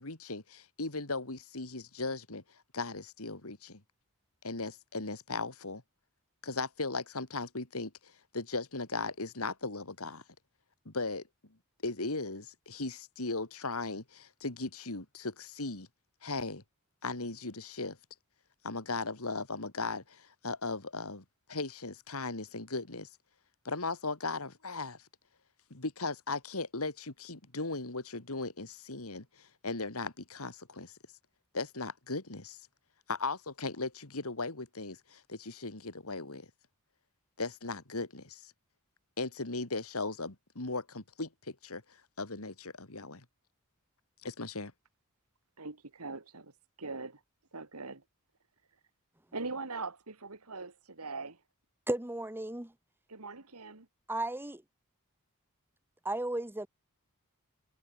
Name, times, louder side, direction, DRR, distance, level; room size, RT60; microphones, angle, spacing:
voice 1, 0.0-2.4 2.7-3.8 4.4-5.8 6.4-10.2 10.8-11.2 11.8-15.9 16.2-16.6 17.0-18.0 18.6-23.1 23.6-25.0 25.7-30.9 31.5-32.6 33.1-36.5 37.4-38.5 39.2-41.8 42.2-43.2 44.2-44.7, left 3 dB, 70° left, 2.8 m, -37 dB
voice 2, 45.6-46.5 46.8-47.2 47.5-48.0 49.3-51.4 53.1-53.9, right 3 dB, 80° right, 2.6 m, -41 dB
voice 3, 51.9-52.7 54.1-54.6 56.0-56.7, right 1 dB, 10° right, 1.2 m, -34 dB
head